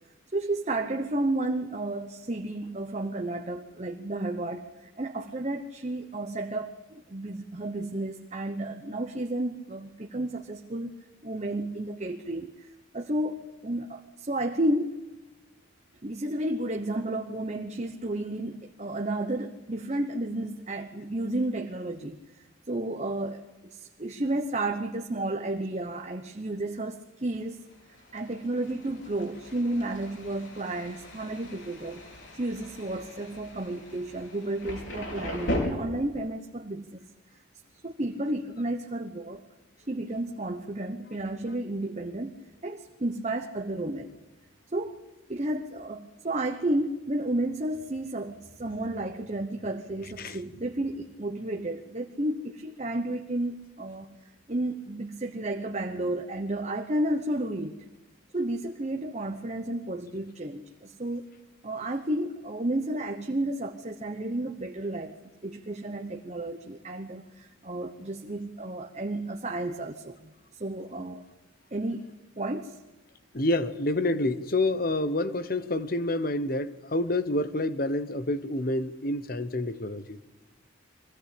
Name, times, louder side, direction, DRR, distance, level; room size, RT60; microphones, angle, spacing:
voice 1, 0.3-11.0 11.2-15.0 16.0-27.6 28.1-32.0 32.3-37.0 37.8-39.4 39.9-42.4 42.6-44.1 44.7-45.0 45.3-54.1 54.5-57.8 58.3-61.3 61.6-65.2 65.4-71.2 71.7-72.1 72.4-72.8, right 1 dB, 35° right, 5 dB, 1.0 m, -32 dB
Thunder, 27.4-35.6, equal, 65° left, 5.4 m, -39 dB
voice 2, 50.0-50.4 73.3-80.2, left 2 dB, 45° left, 13 dB, 1.0 m, -28 dB
23.0 x 16.5 x 8.5 m, 1.2 s
head